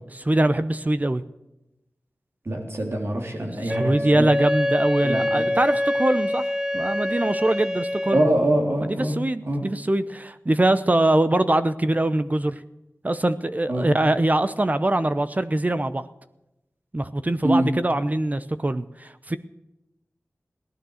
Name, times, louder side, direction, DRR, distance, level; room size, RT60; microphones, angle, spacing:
voice 1, 0.1-1.2 3.6-8.3 8.9-12.6 13.0-16.0 16.9-19.4, right 1 dB, 35° right, 12 dB, 0.8 m, -23 dB
voice 2, 2.5-4.3 5.0-5.5 8.1-9.1 9.4-9.6 13.7-13.9 17.4-17.7, right 1 dB, 60° right, 2 dB, 3.5 m, -24 dB
Wind instrument woodwind instrument, 3.7-8.3, left 1 dB, 15° right, 1.2 m, -25 dB
16.5 x 12.0 x 6.5 m, 0.90 s
wide cardioid pair, 50°, 5 cm